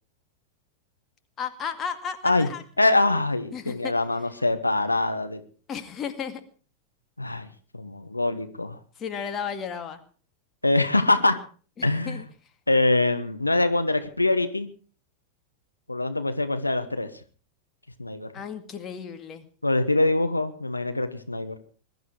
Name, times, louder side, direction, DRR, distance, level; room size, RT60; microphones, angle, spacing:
voice 1, 1.4-2.6 3.5-3.9 5.7-6.4 9.0-10.0 11.8-12.2 18.3-19.4, left 7 dB, 25° left, 8 dB, 2.1 m, -34 dB
voice 2, 2.8-5.4 7.2-7.5 7.7-8.8 10.6-11.4 11.8-12.2 12.7-14.7 15.9-17.1 18.0-18.3 19.6-21.6, left 2 dB, 85° left, 9 dB, 1.2 m, -24 dB
21.5 x 12.0 x 4.7 m, 0.41 s
figure-of-eight pair, 90°, 0 cm